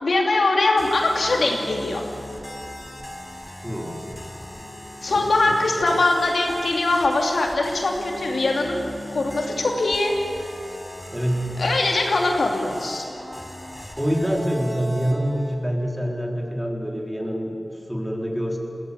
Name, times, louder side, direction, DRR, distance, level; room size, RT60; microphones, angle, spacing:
voice 1, 0.0-2.0 5.0-8.8 9.1-10.1 11.6-13.0, left 2 dB, 80° left, 1 dB, 2.8 m, -22 dB
sound 1, 0.8-15.6, equal, 20° left, 3.7 m, -38 dB
voice 2, 3.6-4.1 5.1-5.6 11.1-11.6 14.0-17.6 17.9-18.6, equal, 10° right, 0 dB, 3.8 m, -26 dB
20.5 x 17.5 x 8.6 m, 2.5 s
wide cardioid pair, 55°, 0 cm